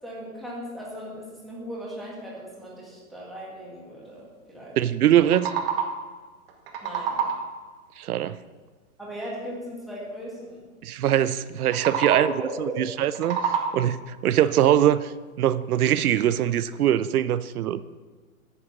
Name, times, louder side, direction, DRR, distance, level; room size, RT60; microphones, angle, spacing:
voice 1, 0.0-4.8 6.8-7.3 9.0-10.6 12.0-12.8, right 1 dB, ahead, -6 dB, 2.1 m, -37 dB
voice 2, 4.8-5.5 8.0-8.4 10.8-12.3 12.6-15.1 15.4-17.8, right 11 dB, 90° right, 15 dB, 0.6 m, -22 dB
sound 1, 5.0-6.1 6.5-7.6 11.6-12.5 12.9-14.0, right 6 dB, 40° right, 1.3 m, -28 dB
9.0 x 6.8 x 6.1 m, 1.4 s
hypercardioid pair, 150°, 43 cm